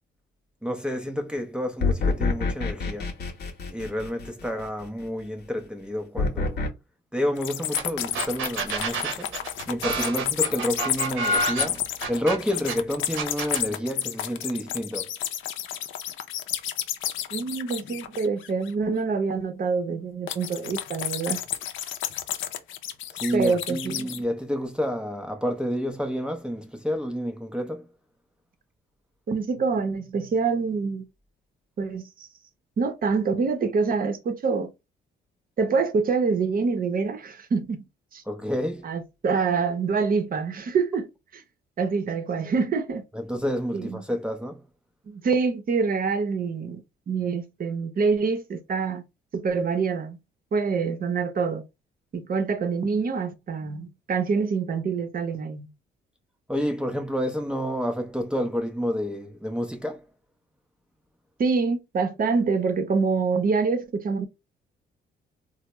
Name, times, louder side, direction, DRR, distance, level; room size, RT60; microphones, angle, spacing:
voice 1, 0.6-3.1 3.7-6.6 7.1-15.1 23.1-27.9 38.3-38.9 43.1-44.7 56.5-60.1, equal, 5° right, 0.5 m, -29 dB
sound 1, 1.8-4.7 6.2-6.7, left 4 dB, 55° left, 0.9 m, -26 dB
sound 2, 7.4-18.7 20.3-24.2, left 11 dB, 80° left, 0.5 m, -31 dB
sound 3, 7.8-7.9 8.1-12.7 13.2-13.7, right 2 dB, 85° right, 0.8 m, -28 dB
voice 2, 17.3-21.4 23.3-24.0 29.3-31.0 31.8-32.3 32.8-34.7 35.6-37.8 38.1-38.2 38.8-41.4 41.8-43.0 43.7-44.0 45.1-49.0 49.3-50.2 50.5-51.6 52.1-55.7 61.4-64.2, right 5 dB, 45° right, 0.7 m, -26 dB
3.3 x 2.0 x 3.0 m
cardioid pair, 90°, 20 cm